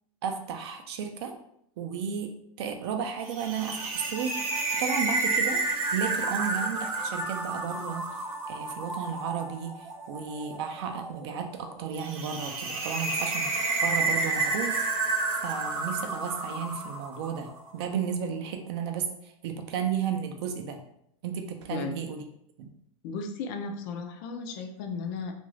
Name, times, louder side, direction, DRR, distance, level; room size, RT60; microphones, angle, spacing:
voice 1, 0.2-1.3 1.8-4.4 4.8-5.6 5.9-8.0 8.5-13.5 13.8-14.9 15.4-20.8 21.2-22.2 22.6-22.7, right 7 dB, 50° right, 5 dB, 0.4 m, -33 dB
sound 1, 3.3-17.6, right 3 dB, 80° right, 0.7 m, -31 dB
voice 2, 23.0-25.3, left 4 dB, 35° left, 4 dB, 0.4 m, -35 dB
2.5 x 2.3 x 3.1 m, 0.71 s
supercardioid pair, 150°, 18 cm